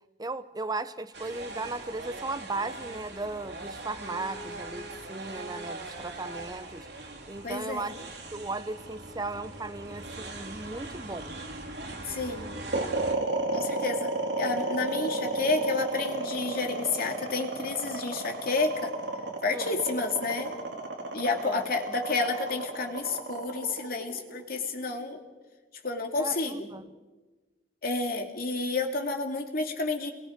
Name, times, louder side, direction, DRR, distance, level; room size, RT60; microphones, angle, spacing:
voice 1, 0.2-6.9 7.3-7.9 8.3-11.3 19.5-19.8 21.4-21.6 26.2-26.9, right 3 dB, 20° right, 0.8 m, -36 dB
sound 1, 1.1-13.1, right 2 dB, 75° right, 3.1 m, -41 dB
voice 2, 7.4-7.9 12.0-12.6 13.5-18.9 19.4-20.5 21.1-25.2 25.8-26.7 27.8-30.1, left 3 dB, 55° left, 2.6 m, -30 dB
sound 2, 12.7-25.0, right 2 dB, 90° right, 3.7 m, -32 dB
30.0 x 21.5 x 5.2 m
head